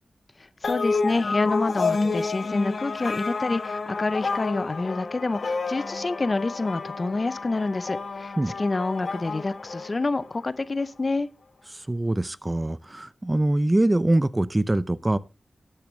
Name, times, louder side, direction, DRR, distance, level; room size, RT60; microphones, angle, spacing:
sound 1, 0.6-10.4, left 4 dB, 70° left, 1.1 m, -30 dB
voice 1, 0.6-11.3, left 3 dB, 45° left, 0.6 m, -27 dB
voice 2, 11.7-15.2, right 1 dB, 25° right, 0.6 m, -23 dB
12.0 x 8.7 x 3.1 m
cardioid pair, 55°, 0 cm